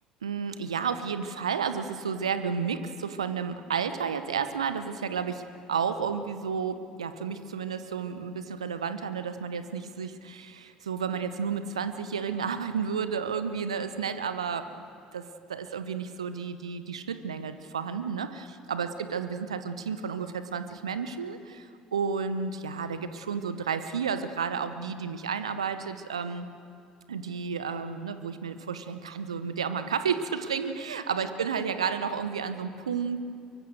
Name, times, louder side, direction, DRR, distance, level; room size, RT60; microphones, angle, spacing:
voice 1, 0.2-5.4 5.7-14.8 15.1-26.5 27.1-33.2, right 6 dB, 80° right, 11 dB, 0.9 m, -32 dB
23.5 x 23.0 x 6.5 m, 2.3 s
figure-of-eight pair, 60°, 3 cm